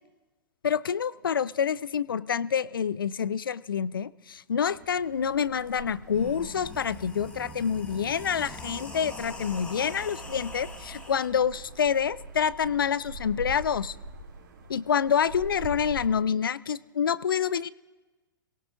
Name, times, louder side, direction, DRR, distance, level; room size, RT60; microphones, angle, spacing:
voice 1, 0.6-13.9 14.7-17.7, left 7 dB, 80° left, 20 dB, 0.4 m, -27 dB
sound 1, 4.6-16.1, right 2 dB, 70° right, 2.9 m, -44 dB
sound 2, 5.5-5.6 6.0-11.3, left 2 dB, 10° left, 1.4 m, -43 dB
29.5 x 17.5 x 2.5 m, 1.3 s
hypercardioid pair, 110°, 11 cm